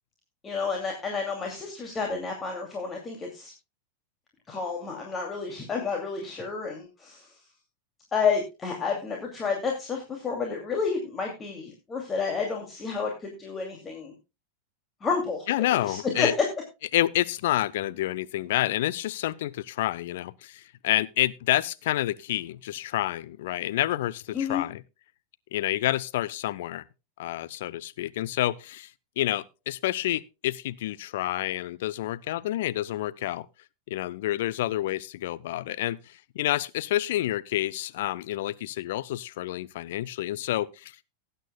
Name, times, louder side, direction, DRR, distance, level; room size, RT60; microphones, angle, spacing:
voice 1, 0.4-3.5 4.5-7.4 8.1-14.1 15.0-16.3 24.3-24.6, left 5 dB, 20° left, 2.5 m, -30 dB
voice 2, 15.5-16.3 16.9-24.8 25.5-26.8 27.2-28.9 29.2-33.5 33.9-41.0, left 14 dB, 55° left, 0.6 m, -29 dB
19.0 x 9.1 x 2.2 m
figure-of-eight pair, 90°, 0 cm